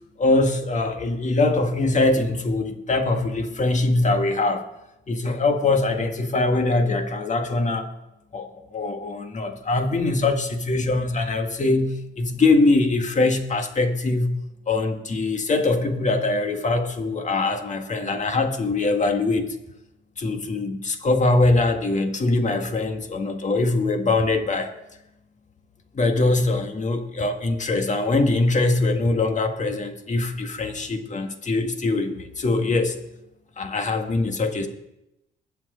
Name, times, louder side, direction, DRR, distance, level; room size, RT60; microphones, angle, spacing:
voice 1, 0.2-4.7 5.1-7.9 8.3-14.4 14.7-19.5 20.2-24.7 25.9-33.0 33.6-34.7, left 2 dB, 35° left, 6 dB, 1.7 m, -22 dB
21.5 x 7.5 x 3.9 m, 0.88 s
cardioid pair, 90°, 20 cm